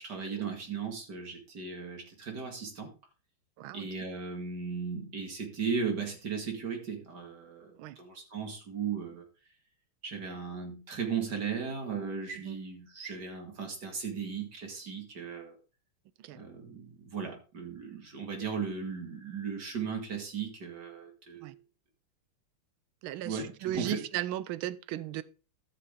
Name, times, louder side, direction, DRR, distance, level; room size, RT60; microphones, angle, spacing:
voice 1, 0.0-2.9 3.7-9.2 10.0-15.5 16.3-21.6 23.2-24.0, right 6 dB, 55° right, 2.6 m, -36 dB
voice 2, 3.6-3.9 7.8-8.0 12.4-12.6 16.2-16.4 21.4-21.5 23.0-25.2, right 13 dB, 80° right, 1.5 m, -36 dB
13.5 x 6.6 x 3.7 m
omnidirectional pair, 2.3 m